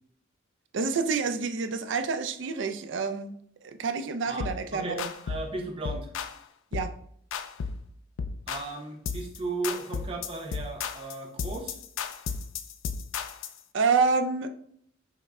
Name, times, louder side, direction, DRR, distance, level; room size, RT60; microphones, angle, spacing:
voice 1, 0.7-3.3 3.6-5.1 6.7-6.9 13.7-14.5, right 4 dB, 70° right, 9 dB, 0.4 m, -28 dB
voice 2, 4.3-6.1 8.5-11.8, right 2 dB, 30° right, 2 dB, 0.7 m, -36 dB
sound 1, 4.4-4.6 5.0-5.5 5.8-6.4 6.7-7.0 7.3-7.9 8.2-8.7 9.1-9.4 9.6-13.6, left 5 dB, 90° left, 0.4 m, -34 dB
5.5 x 2.1 x 3.6 m, 0.66 s
head